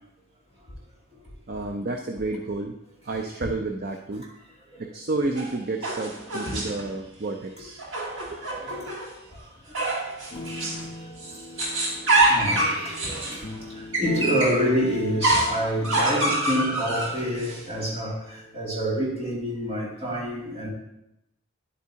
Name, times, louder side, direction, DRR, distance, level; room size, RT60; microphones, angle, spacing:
voice 1, 1.5-2.8 3.0-4.3 4.8-7.8 8.3-8.4, right 2 dB, 45° right, 4 dB, 0.5 m, -30 dB
sound 1, 5.3-6.9 7.8-9.1 9.7-10.9 11.2-14.6 15.2-17.5, right 2 dB, 65° right, 1.7 m, -26 dB
voice 2, 8.2-8.9 9.3-9.9 10.3-10.9 12.0-20.7, equal, 30° right, -6 dB, 2.5 m, -28 dB
sound 2, 10.3-19.4, left 1 dB, 35° left, 0.6 m, -41 dB
10.0 x 8.3 x 2.8 m, 0.85 s
head